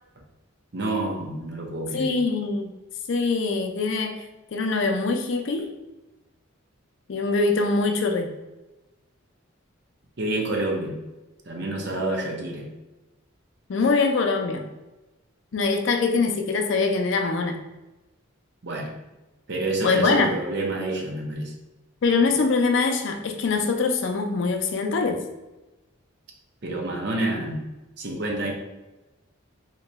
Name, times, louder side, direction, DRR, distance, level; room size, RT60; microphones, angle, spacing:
voice 1, 0.7-2.1 10.2-11.0 11.5-12.7 18.6-18.9 19.5-21.5 26.6-27.6 28.0-28.5, right 2 dB, 55° right, 1 dB, 0.6 m, -28 dB
voice 2, 1.9-2.7 3.1-4.2 4.5-5.7 7.1-8.4 13.7-14.6 15.5-17.6 19.8-20.3 22.0-25.2, left 4 dB, 60° left, 5 dB, 0.4 m, -23 dB
2.9 x 2.2 x 3.9 m, 1.1 s
head